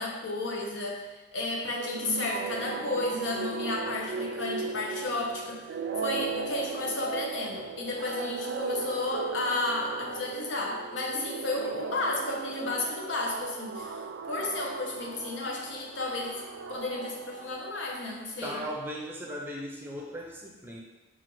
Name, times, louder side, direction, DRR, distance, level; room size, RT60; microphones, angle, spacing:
voice 1, 0.0-5.6 6.0-16.4 16.7-18.6, left 2 dB, 85° left, 0 dB, 0.7 m, -32 dB
sound 1, 1.7-18.1, right 5 dB, 80° right, 0.3 m, -37 dB
Wind instrument woodwind instrument, 8.6-11.6 12.1-17.0, left 1 dB, 30° left, 0.9 m, -51 dB
voice 2, 18.4-20.8, equal, 10° right, -2 dB, 0.5 m, -37 dB
5.5 x 2.4 x 3.0 m, 1.1 s
head